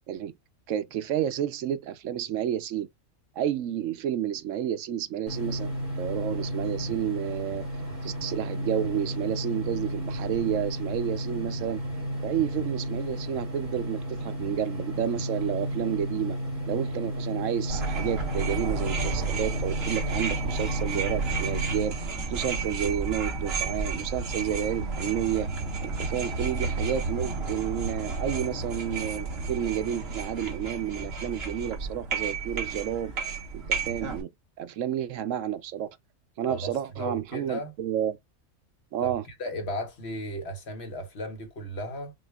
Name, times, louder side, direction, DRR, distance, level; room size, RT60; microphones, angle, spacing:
voice 1, 0.7-2.9 3.4-5.7 6.0-7.6 8.0-11.8 12.2-16.4 16.7-22.0 22.3-25.5 25.8-33.1 33.5-34.3 34.6-35.9 36.4-38.2 38.9-39.2, right 10 dB, 75° right, 1.0 m, -30 dB
sound 1, 5.3-21.8, equal, 35° right, 2.0 m, -33 dB
sound 2, 17.7-34.2, right 4 dB, 50° right, 1.4 m, -32 dB
voice 2, 36.5-37.7 39.0-39.1 39.4-42.1, equal, 55° left, 1.4 m, -35 dB
6.3 x 2.5 x 2.3 m
omnidirectional pair, 1.4 m